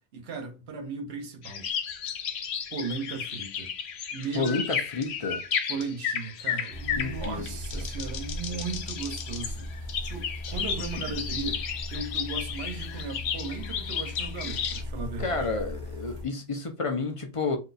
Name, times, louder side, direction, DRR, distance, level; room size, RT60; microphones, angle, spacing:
voice 1, 0.1-1.7 2.7-3.7 4.1-4.7 5.7-9.7 10.0-15.5, right 4 dB, 75° right, 1.1 m, -36 dB
sound 1, 1.4-14.8, left 7 dB, 85° left, 0.9 m, -33 dB
voice 2, 4.3-5.4 7.0-7.8 15.2-17.6, left 4 dB, 40° left, 0.5 m, -31 dB
sound 2, 6.7-16.3, left 1 dB, 50° right, 0.8 m, -38 dB
2.7 x 2.3 x 3.9 m
omnidirectional pair, 1.1 m